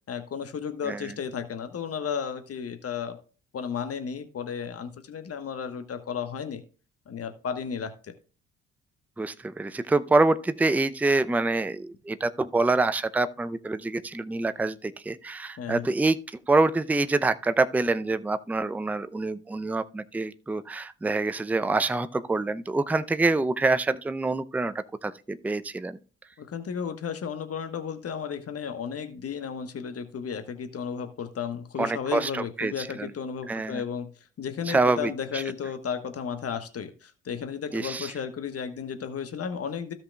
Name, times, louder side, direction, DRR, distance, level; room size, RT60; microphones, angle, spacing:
voice 1, 0.1-3.2 3.5-6.6 7.1-8.1 15.6-15.9 26.4-39.9, left 7 dB, 40° left, 1.3 m, -34 dB
voice 2, 9.2-16.2 16.5-26.0 31.8-33.1 33.5-33.8 34.7-35.4 37.7-38.1, right 3 dB, 5° right, 0.5 m, -26 dB
16.0 x 5.8 x 2.3 m
figure-of-eight pair, 45°, 36 cm